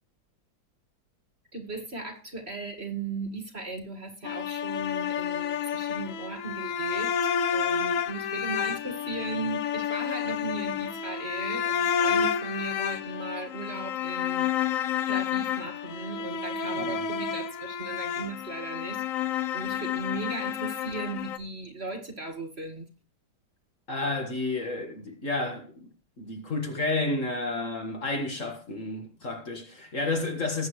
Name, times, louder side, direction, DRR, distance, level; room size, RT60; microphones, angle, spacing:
voice 1, 1.5-7.1 7.5-14.5 15.0-19.3 19.5-22.9, right 3 dB, 35° right, 2.1 m, -37 dB
sound 1, 4.2-21.4, left 8 dB, 60° left, 0.9 m, -30 dB
voice 2, 23.9-25.9 26.2-30.7, left 2 dB, 45° left, 2.0 m, -31 dB
20.0 x 7.9 x 3.2 m
omnidirectional pair, 2.0 m